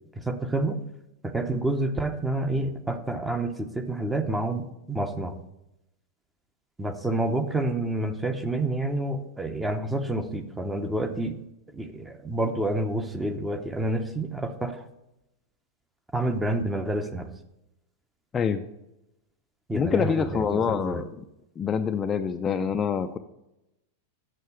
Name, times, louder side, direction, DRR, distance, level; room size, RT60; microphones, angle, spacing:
voice 1, 0.1-0.8 1.2-5.4 6.8-11.4 11.7-14.8 16.1-17.3 19.7-21.0, right 2 dB, 10° right, 8 dB, 0.7 m, -28 dB
voice 2, 19.7-21.1 21.6-23.2, left 6 dB, 20° left, 7 dB, 0.4 m, -26 dB
6.6 x 6.5 x 5.5 m, 0.90 s
hypercardioid pair, 125°, 0 cm